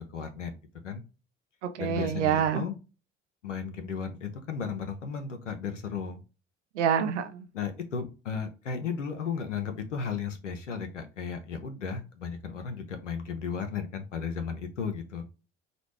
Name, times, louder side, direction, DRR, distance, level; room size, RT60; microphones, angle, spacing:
voice 1, 0.1-0.5 0.8-1.0 1.8-2.8 3.4-6.2 7.5-15.2, left 6 dB, 85° left, 0.7 m, -35 dB
voice 2, 1.6-2.7 6.7-7.5, right 8 dB, 75° right, 0.6 m, -27 dB
5.0 x 2.3 x 3.1 m
figure-of-eight pair, 55°, 36 cm